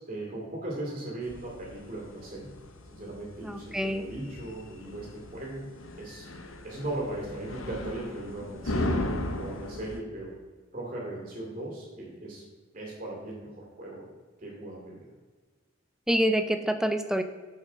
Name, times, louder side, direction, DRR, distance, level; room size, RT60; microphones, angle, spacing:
voice 1, 0.1-2.5 2.9-5.7 6.0-6.3 6.6-10.3 10.7-12.4 12.7-14.0 14.4-15.1, right 1 dB, 35° right, -3 dB, 2.5 m, -38 dB
sound 1, 1.2-10.0, left 1 dB, 80° left, 0.9 m, -37 dB
voice 2, 3.4-4.0 16.1-17.2, equal, 5° right, 8 dB, 0.5 m, -26 dB
7.4 x 5.7 x 5.7 m, 1.4 s
head